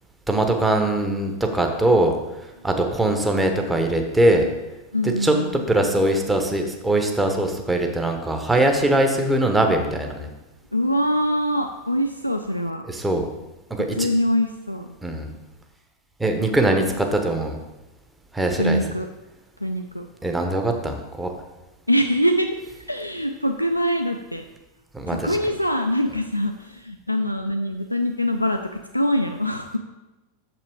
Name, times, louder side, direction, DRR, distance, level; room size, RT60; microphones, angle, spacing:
voice 1, 0.3-2.1 2.6-4.5 5.2-5.3 5.7-10.3 12.9-13.2 13.8-14.1 15.0-15.3 16.2-17.6 18.3-18.8 20.2-21.3 24.9-25.4, right 1 dB, 10° right, 4 dB, 1.0 m, -21 dB
voice 2, 4.9-5.6 10.7-12.9 13.9-14.9 18.6-19.1 19.6-20.0 21.9-24.5 25.1-29.8, equal, 90° left, 5 dB, 0.4 m, -24 dB
6.8 x 6.0 x 4.6 m, 1.0 s
figure-of-eight pair, 90°, 0 cm